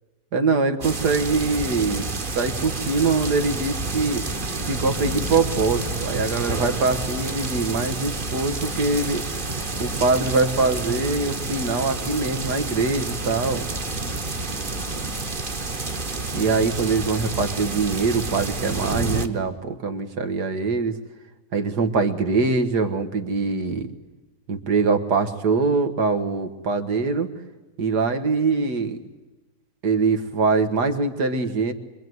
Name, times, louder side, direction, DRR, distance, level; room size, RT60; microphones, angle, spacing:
voice 1, 0.3-2.1 2.4-4.3 4.7-9.2 9.8-13.7 16.3-21.0 21.5-23.9 24.5-27.3 27.8-29.0 29.8-31.7, right 4 dB, 80° right, 8 dB, 2.1 m, -23 dB
sound 1, 0.8-19.3, right 3 dB, 35° right, 1.5 m, -29 dB
25.0 x 23.0 x 9.4 m, 1.1 s
omnidirectional pair, 1.7 m